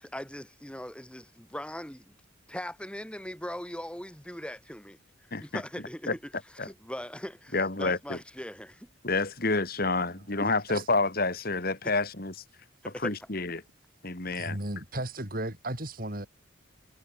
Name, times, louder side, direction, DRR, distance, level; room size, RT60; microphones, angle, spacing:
voice 1, 0.0-2.2 2.5-5.0 5.4-6.1 6.6-8.9 12.8-13.1, equal, 5° left, 4.6 m, -40 dB
voice 2, 5.3-5.6 6.1-6.2 6.6-6.7 7.5-8.2 9.0-12.3 13.0-13.6 14.0-14.6, left 3 dB, 45° left, 2.4 m, -28 dB
voice 3, 14.4-16.3, right 1 dB, 45° right, 5.0 m, -35 dB
head